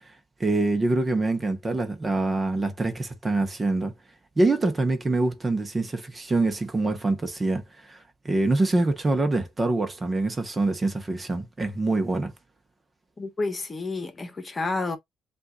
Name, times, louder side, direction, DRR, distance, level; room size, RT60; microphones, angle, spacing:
voice 1, 0.4-3.9 4.4-8.0 8.2-12.3, right 2 dB, 25° right, 1.1 m, -25 dB
voice 2, 13.2-15.0, left 3 dB, 30° left, 1.2 m, -30 dB
7.7 x 2.6 x 2.4 m
cardioid pair, 90°, 0 cm